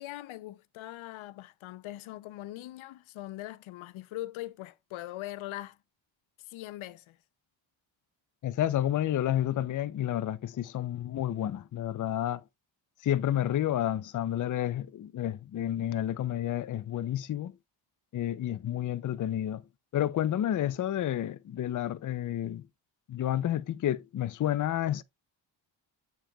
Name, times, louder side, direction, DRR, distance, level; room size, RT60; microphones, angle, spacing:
voice 1, 0.0-5.8 6.4-7.2, left 15 dB, 90° left, 0.5 m, -41 dB
voice 2, 8.4-12.4 13.0-17.6 18.1-19.6 19.9-22.7 23.1-25.0, left 11 dB, 40° left, 0.5 m, -30 dB
7.5 x 6.8 x 2.2 m
cardioid pair, 115°, 47 cm